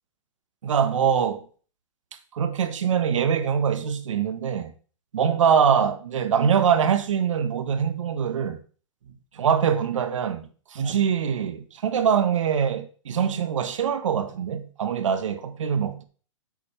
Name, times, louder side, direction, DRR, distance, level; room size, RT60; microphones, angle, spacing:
voice 1, 0.6-1.4 2.3-4.7 5.1-8.6 9.3-16.0, right 7 dB, 75° right, 1.7 m, -23 dB
10.0 x 8.1 x 3.6 m
hypercardioid pair, 170°, 17 cm